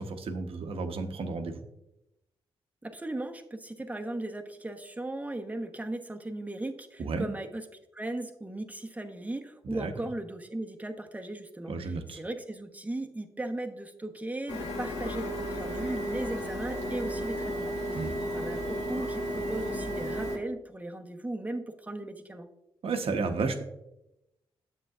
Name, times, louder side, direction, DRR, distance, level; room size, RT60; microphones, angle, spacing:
voice 1, 0.0-1.6 7.0-7.2 9.6-9.9 11.7-12.2 17.9-18.2 22.8-23.6, right 4 dB, 65° right, 5 dB, 1.0 m, -32 dB
voice 2, 2.8-7.6 7.9-22.5, right 1 dB, 15° right, 4 dB, 1.0 m, -37 dB
Printer, 14.5-20.4, equal, 85° left, 1.3 m, -33 dB
9.7 x 7.3 x 2.4 m, 0.89 s
cardioid pair, 60°, 10 cm